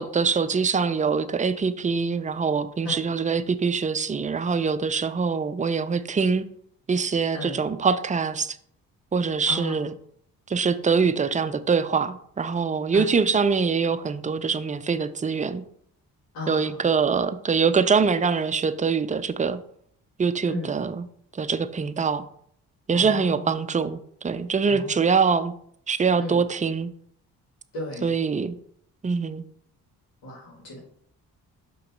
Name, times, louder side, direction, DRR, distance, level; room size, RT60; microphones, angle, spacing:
voice 1, 0.0-6.5 6.9-8.6 9.1-9.9 10.5-15.6 16.5-19.6 20.2-21.0 21.3-22.2 22.9-25.5 25.9-26.9 28.0-28.6 29.0-29.4, right 5 dB, 20° right, 12 dB, 0.4 m, -24 dB
voice 2, 16.3-16.9 20.5-20.7 22.9-23.5 24.7-24.9 26.2-26.4 27.7-28.1 30.2-30.8, left 1 dB, 85° left, -4 dB, 1.9 m, -35 dB
5.6 x 3.2 x 5.3 m, 0.66 s
supercardioid pair, 45°, 42 cm